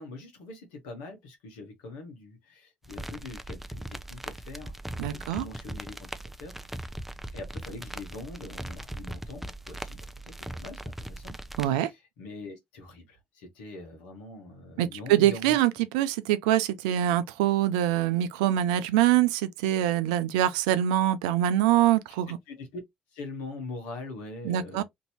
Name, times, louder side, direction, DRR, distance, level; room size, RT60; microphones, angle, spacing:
voice 1, 0.0-5.9 6.2-6.9 7.3-10.0 10.2-11.3 11.6-15.7 22.5-22.8 23.1-24.8, left 3 dB, 85° left, 1.2 m, -43 dB
sound 1, 2.8-11.7, right 1 dB, 5° right, 0.5 m, -39 dB
voice 2, 5.0-5.4 11.6-11.9 14.8-22.3 24.4-24.8, right 12 dB, 90° right, 0.4 m, -24 dB
3.0 x 2.7 x 2.8 m
hypercardioid pair, 55°, 4 cm